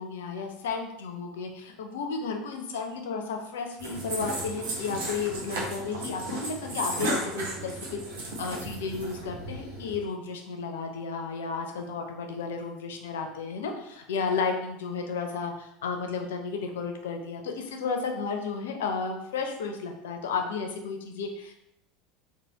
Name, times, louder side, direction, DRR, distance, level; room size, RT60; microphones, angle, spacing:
voice 1, 0.0-21.5, left 5 dB, 65° left, 3 dB, 0.4 m, -33 dB
sound 1, 3.8-10.0, right 1 dB, 65° right, 0.7 m, -35 dB
3.2 x 2.1 x 2.7 m, 0.78 s
figure-of-eight pair, 75°, 0 cm